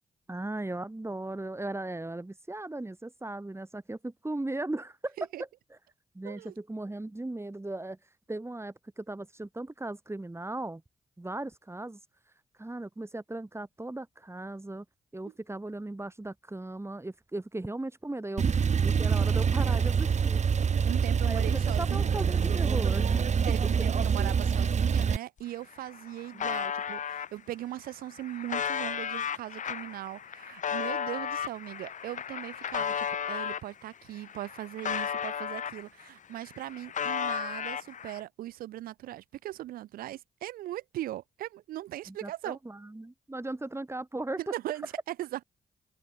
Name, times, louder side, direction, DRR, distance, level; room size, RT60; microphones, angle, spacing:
voice 1, 0.3-5.2 6.1-10.8 11.2-14.8 15.1-20.4 21.2-23.3 26.3-26.4 42.1-44.4, right 2 dB, 15° right, 3.2 m, -37 dB
Male speech man speaking / Car / Idling, 18.4-25.2, right 6 dB, 55° right, 1.7 m, -26 dB
voice 2, 20.7-22.1 23.5-42.6 44.4-45.4, right 14 dB, 80° right, 2.6 m, -39 dB
sound 1, 25.4-25.5 25.7-27.3 27.9-33.7 34.2-36.1 36.4-38.2, left 8 dB, 60° left, 1.2 m, -34 dB
supercardioid pair, 45°, 15 cm